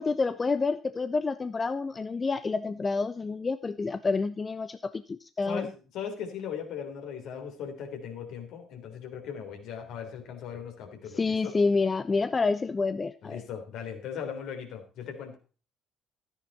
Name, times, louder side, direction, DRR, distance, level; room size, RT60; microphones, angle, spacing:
voice 1, 0.0-5.7 11.1-13.4, left 4 dB, 30° left, 13 dB, 0.7 m, -28 dB
voice 2, 5.5-11.5 13.2-15.4, left 7 dB, 60° left, 4 dB, 3.4 m, -38 dB
14.0 x 9.7 x 4.2 m, 0.37 s
figure-of-eight pair, 50°, 0 cm